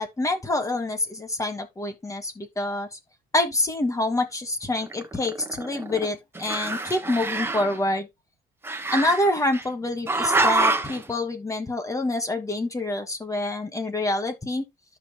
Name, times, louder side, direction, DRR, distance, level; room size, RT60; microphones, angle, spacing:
voice 1, 0.0-3.0 3.3-8.1 8.9-14.6, left 2 dB, 20° left, 1.4 m, -26 dB
Growling, 4.8-6.1 6.4-7.8 8.6-9.6 10.1-11.0, right 3 dB, 15° right, 1.1 m, -26 dB
14.0 x 5.4 x 2.2 m
cardioid pair, 110°, 17 cm